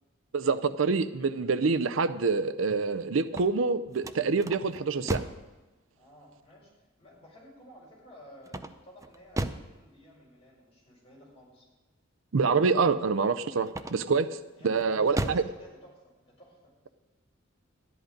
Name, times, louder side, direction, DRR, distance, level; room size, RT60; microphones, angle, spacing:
voice 1, 0.3-5.2 12.3-14.3 14.6-15.4, right 4 dB, 75° right, 12 dB, 0.5 m, -26 dB
sound 1, 3.2-5.5 8.5-9.8 13.7-14.2 14.7-15.5, right 1 dB, 15° right, 0.6 m, -35 dB
voice 2, 5.9-6.7 7.0-11.7 14.5-16.6, equal, 30° left, -5 dB, 5.6 m, -53 dB
13.0 x 10.5 x 5.1 m, 1.2 s
head